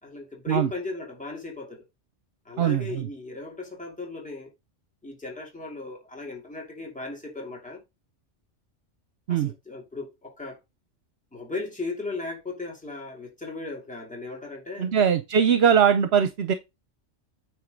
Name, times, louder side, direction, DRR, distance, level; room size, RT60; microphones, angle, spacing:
voice 1, 0.0-1.8 2.4-4.5 5.0-7.8 9.3-10.6 11.3-14.9, left 3 dB, 5° left, 2.6 m, -36 dB
voice 2, 2.6-3.1 9.3-9.5 14.8-16.5, right 8 dB, 60° right, 1.0 m, -21 dB
9.2 x 3.5 x 5.2 m
omnidirectional pair, 1.2 m